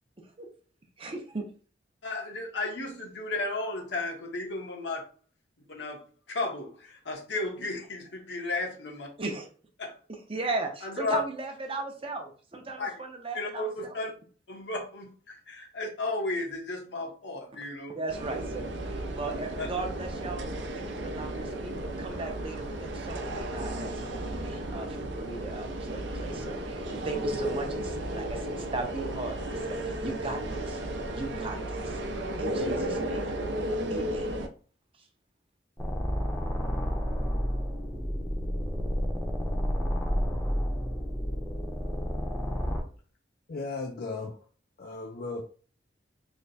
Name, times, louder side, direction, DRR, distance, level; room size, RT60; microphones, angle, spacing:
voice 1, 1.0-1.5 9.2-9.5 10.1-14.0 17.5-17.6 17.9-30.8 31.1-32.0 32.4-33.4 33.9-34.3, right 3 dB, 30° right, 0.6 m, -37 dB
voice 2, 2.0-5.0 5.7-6.0 6.3-9.1 9.8-9.9 10.8-11.2 12.8-12.9 13.3-14.1 14.5-18.0 19.6-19.7, left 2 dB, 75° left, 1.1 m, -34 dB
sound 1, 18.1-34.5, right 1 dB, 75° right, 0.6 m, -34 dB
sound 2, 35.8-42.8, equal, 15° left, 0.7 m, -30 dB
voice 3, 43.5-44.4 44.8-45.4, left 3 dB, 55° left, 0.4 m, -36 dB
3.3 x 2.1 x 4.0 m
head